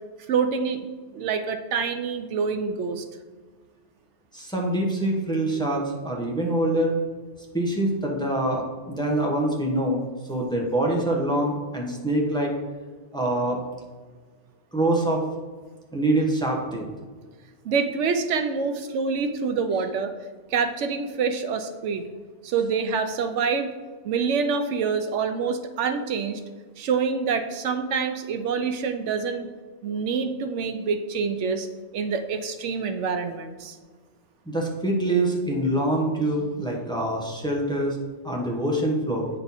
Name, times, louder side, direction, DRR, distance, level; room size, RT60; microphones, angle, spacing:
voice 1, 0.3-0.9 1.1-3.0 17.6-20.1 20.5-22.1 22.4-23.7 24.0-26.4 26.8-29.5 29.8-31.7 31.9-33.8, right 5 dB, 80° right, 8 dB, 0.9 m, -26 dB
voice 2, 4.3-7.0 7.5-12.5 13.1-13.6 14.7-15.2 15.9-16.9 34.5-38.0 38.2-39.3, right 1 dB, 5° left, -1 dB, 1.0 m, -25 dB
8.9 x 4.4 x 4.1 m, 1.4 s
omnidirectional pair, 1.2 m